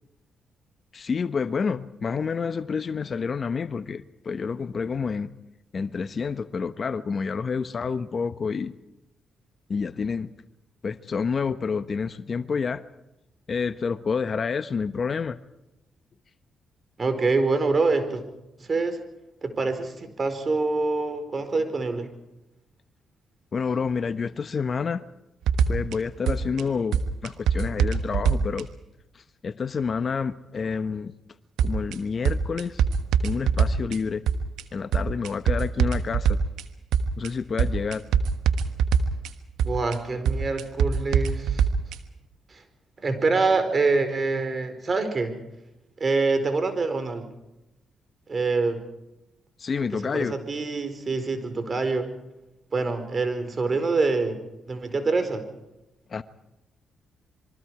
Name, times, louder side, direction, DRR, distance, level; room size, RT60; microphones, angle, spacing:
voice 1, 0.9-5.3 5.7-8.7 9.7-10.3 10.8-12.8 13.5-15.4 23.5-25.0 25.7-28.7 29.1-31.1 31.6-32.8 33.2-34.2 34.7-36.4 37.2-38.0 49.6-50.4 56.1-56.2, left 5 dB, 50° left, 13 dB, 1.0 m, -28 dB
voice 2, 17.0-18.2 18.6-19.0 19.4-22.1 39.6-41.6 42.5-42.6 43.0-45.3 46.0-47.2 48.3-48.8 50.1-52.1 52.7-54.4 54.7-55.4, right 3 dB, 45° right, 8 dB, 4.6 m, -25 dB
sound 1, 25.5-25.9 26.3-26.6 26.9-28.6 31.6-31.9 32.2-34.0 34.3-34.6 34.9-36.6 36.9-37.3 37.6-39.3 39.6-39.9 40.2-41.9, right 7 dB, 80° right, 1.3 m, -22 dB
27.0 x 23.5 x 4.8 m, 0.93 s
supercardioid pair, 50°, 0 cm